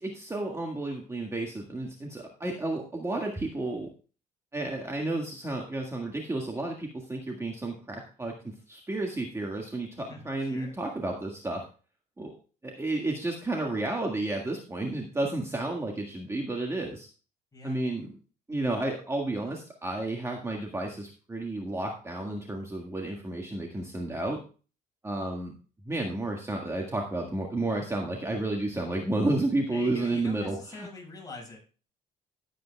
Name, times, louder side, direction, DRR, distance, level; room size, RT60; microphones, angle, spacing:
voice 1, 0.0-3.9 4.5-8.3 8.7-11.6 12.2-12.4 12.6-17.1 17.6-18.1 18.5-24.4 25.0-25.5 25.9-30.9, right 2 dB, 15° right, 0 dB, 1.8 m, -31 dB
voice 2, 10.0-10.8 17.5-17.9 29.7-31.6, left 3 dB, 20° left, 0 dB, 6.3 m, -44 dB
16.5 x 8.4 x 2.3 m, 0.36 s
cardioid pair, 110°, 17 cm